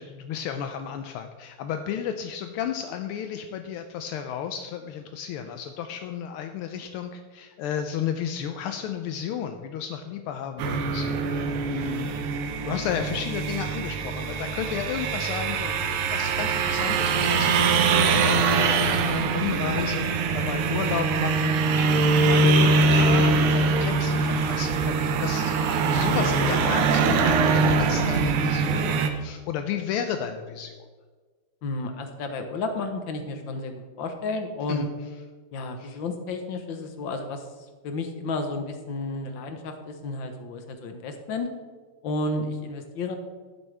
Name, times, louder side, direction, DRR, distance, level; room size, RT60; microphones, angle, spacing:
voice 1, 0.0-12.1 12.6-30.9 34.7-34.9 35.8-36.0, left 8 dB, 80° left, 7 dB, 1.5 m, -33 dB
sound 1, 10.6-29.1, right 4 dB, 85° right, 1.8 m, -23 dB
voice 2, 31.6-34.9 35.5-37.4 37.8-41.5 42.0-43.2, left 2 dB, 65° left, 6 dB, 1.7 m, -32 dB
11.5 x 9.9 x 3.3 m, 1.4 s
omnidirectional pair, 2.4 m